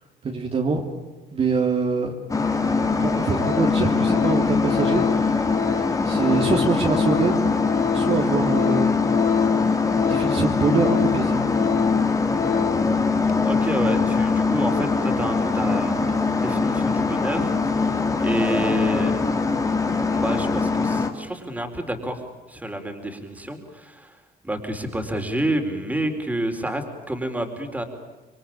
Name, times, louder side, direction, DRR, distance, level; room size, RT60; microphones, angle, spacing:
voice 1, 0.2-0.9 1.3-2.1 2.7-5.5 6.0-7.5 7.9-9.0 9.9-11.6, right 4 dB, 35° right, 1 dB, 3.0 m, -24 dB
sound 1, 2.3-21.1, left 4 dB, 20° left, 2.7 m, -22 dB
Organ, 2.9-3.1 3.4-12.9 13.3-13.4, left 8 dB, 55° left, 0.9 m, -28 dB
voice 2, 13.4-16.0 16.3-19.2 20.1-22.2 22.5-24.2 24.4-27.8, right 1 dB, 10° right, 5 dB, 4.2 m, -29 dB
27.0 x 22.5 x 8.8 m, 1.2 s
cardioid pair, 110°, 17 cm